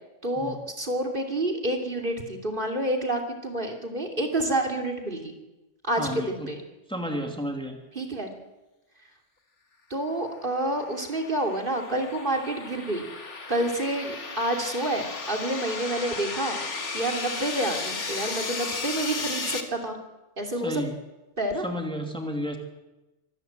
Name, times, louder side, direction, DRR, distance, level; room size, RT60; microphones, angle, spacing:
voice 1, 0.2-5.3 5.8-6.6 7.9-8.3 9.9-13.1 13.5-16.6 16.9-20.0 20.4-20.8 21.4-21.7, right 1 dB, 45° right, 2 dB, 3.1 m, -28 dB
voice 2, 6.0-6.5 6.9-7.8 20.6-21.0 21.6-22.6, equal, 5° left, 3 dB, 2.6 m, -32 dB
sound 1, 10.6-19.6, left 4 dB, 75° left, 2.3 m, -34 dB
25.0 x 14.0 x 9.2 m, 1.1 s
omnidirectional pair, 1.2 m